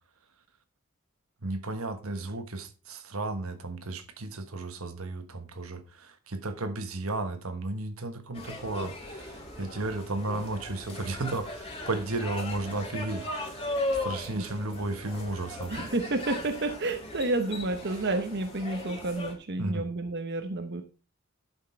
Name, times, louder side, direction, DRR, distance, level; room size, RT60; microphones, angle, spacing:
voice 1, 1.4-13.3 13.6-13.7 14.0-15.7 19.6-19.9, right 2 dB, 70° right, 1.3 m, -34 dB
sound 1, 8.3-19.3, left 2 dB, 25° left, 2.6 m, -38 dB
voice 2, 15.7-20.8, right 2 dB, 50° right, 1.0 m, -30 dB
11.5 x 6.4 x 4.4 m
head